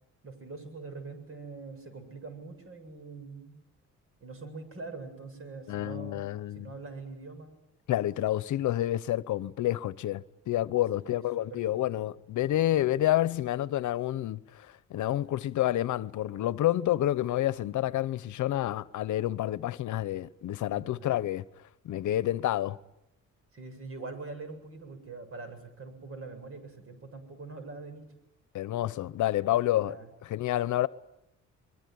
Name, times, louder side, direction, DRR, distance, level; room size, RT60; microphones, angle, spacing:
voice 1, 0.2-3.6 4.2-7.6 11.1-11.8 20.7-21.1 23.5-28.1 29.8-30.1, right 3 dB, 45° right, 7.9 m, -43 dB
voice 2, 5.7-6.7 7.9-21.4 21.8-22.8 28.5-30.0 30.2-30.9, left 13 dB, 75° left, 0.9 m, -29 dB
24.0 x 22.5 x 9.5 m
cardioid pair, 90°, 30 cm